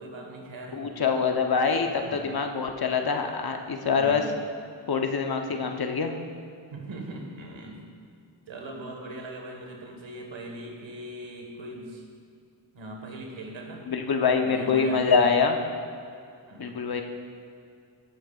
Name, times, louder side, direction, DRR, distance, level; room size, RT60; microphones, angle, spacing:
voice 1, 0.0-0.9 2.0-2.3 4.0-4.4 6.7-8.0 8.5-12.1 12.7-13.9 14.4-15.2 16.5-16.7, right 1 dB, 75° right, 1 dB, 1.7 m, -40 dB
voice 2, 0.7-4.2 4.9-6.1 13.9-15.6 16.6-17.0, left 5 dB, 50° left, 4 dB, 1.0 m, -25 dB
14.5 x 8.5 x 2.5 m, 2.4 s
cardioid pair, 50°, 46 cm